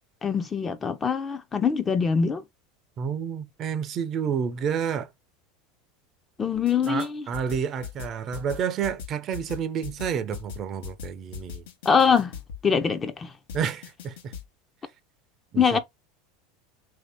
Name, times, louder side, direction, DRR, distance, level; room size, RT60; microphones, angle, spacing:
voice 1, 0.2-2.4 6.4-7.2 11.9-12.3 12.6-13.3 15.6-15.8, left 6 dB, 20° left, 0.5 m, -23 dB
voice 2, 3.0-5.1 6.9-11.6 13.5-14.3 15.5-15.8, right 7 dB, 35° right, 0.5 m, -30 dB
sound 1, 6.5-7.1 7.3-12.6 13.5-14.4, left 7 dB, 80° left, 0.8 m, -39 dB
3.1 x 2.7 x 3.4 m
supercardioid pair, 130°, 0 cm